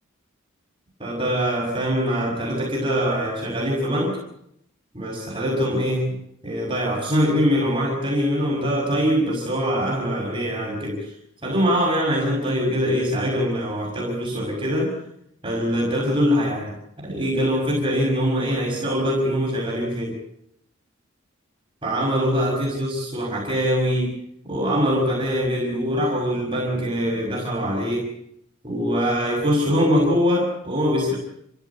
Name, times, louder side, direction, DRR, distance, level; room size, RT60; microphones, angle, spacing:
voice 1, 1.0-4.2 4.9-6.1 6.4-11.1 11.4-15.0 15.4-16.7 17.0-20.2 21.8-24.2 24.5-28.1 28.6-31.2, equal, 25° right, -2 dB, 5.9 m, -23 dB
29.5 x 15.0 x 8.4 m, 0.75 s
head